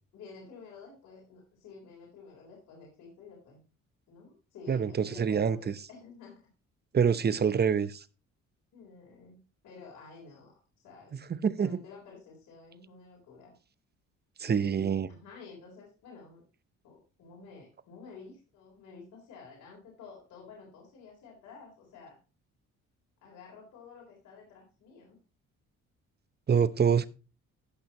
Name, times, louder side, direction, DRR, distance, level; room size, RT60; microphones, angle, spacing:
voice 1, 0.1-3.7 4.1-6.4 8.7-11.2 11.6-13.5 14.4-16.4 16.8-22.2 23.2-25.2, left 5 dB, 80° left, 4.1 m, -51 dB
voice 2, 4.7-5.6 6.9-8.0 11.3-11.8 14.4-15.1 26.5-27.1, right 7 dB, 35° right, 0.8 m, -26 dB
15.0 x 6.2 x 3.0 m
cardioid pair, 90°, 30 cm